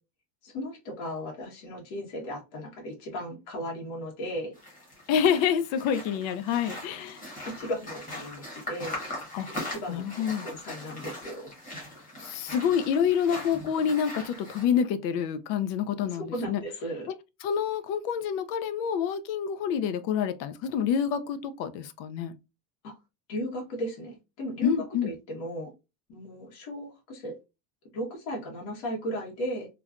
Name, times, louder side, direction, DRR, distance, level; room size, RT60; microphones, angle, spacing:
voice 1, 0.4-4.5 7.4-9.0 9.7-10.0 10.4-11.5 16.1-17.1 22.8-23.0 23.3-24.7 25.0-25.7 26.1-27.4 27.9-29.7, equal, 70° left, 1.5 m, -36 dB
sound 1, 4.5-14.6, left 1 dB, 15° left, 1.2 m, -40 dB
voice 2, 5.1-7.2 9.3-9.5 9.9-10.5 12.2-16.6 17.4-22.3 24.6-25.1, left 8 dB, 90° left, 0.6 m, -27 dB
3.2 x 2.3 x 2.4 m
cardioid pair, 170°, 50 cm